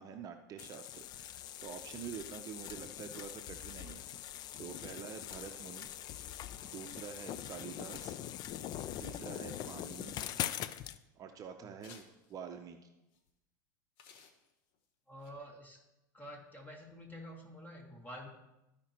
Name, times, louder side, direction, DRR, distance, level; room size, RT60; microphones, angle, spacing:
voice 1, 0.0-4.0 4.6-5.9 6.6-8.2 9.0-10.2 11.2-12.9, right 7 dB, 35° right, 6 dB, 0.7 m, -47 dB
sound 1, 0.6-11.0, left 11 dB, 45° left, 0.4 m, -43 dB
sound 2, 11.0-11.1 11.8-12.4 13.1-13.3 14.0-14.8 15.2-15.3, left 6 dB, 60° left, 1.1 m, -59 dB
voice 2, 15.1-15.8 16.1-18.3, equal, 20° left, 0 dB, 2.3 m, -49 dB
14.0 x 5.1 x 3.0 m, 0.95 s
hypercardioid pair, 95°, 10 cm